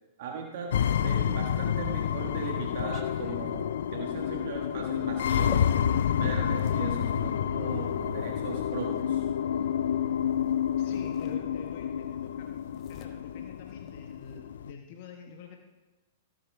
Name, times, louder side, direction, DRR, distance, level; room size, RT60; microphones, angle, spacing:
voice 1, 0.2-5.7 6.1-9.2, right 5 dB, 65° right, 1 dB, 1.5 m, -38 dB
sound 1, 0.7-14.7, left 9 dB, 75° left, 0.4 m, -29 dB
sound 2, 2.6-6.9 7.7-9.1 10.3-10.5 10.8-11.9 12.2-14.4, left 9 dB, 40° left, 1.0 m, -47 dB
voice 2, 10.8-12.5 12.9-15.6, left 6 dB, 60° left, 3 dB, 1.2 m, -47 dB
17.0 x 7.7 x 3.5 m, 1.2 s
hypercardioid pair, 110°, 0 cm